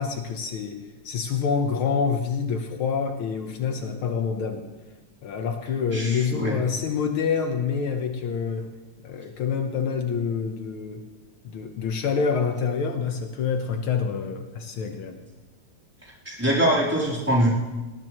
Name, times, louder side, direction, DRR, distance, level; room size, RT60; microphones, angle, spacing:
voice 1, 0.0-4.7 5.2-8.7 9.0-11.0 11.4-15.2, left 6 dB, 75° left, 4 dB, 1.8 m, -27 dB
voice 2, 5.9-6.6 16.3-17.5, right 1 dB, 5° right, -6 dB, 3.6 m, -23 dB
20.0 x 18.5 x 3.1 m, 1.2 s
omnidirectional pair, 2.4 m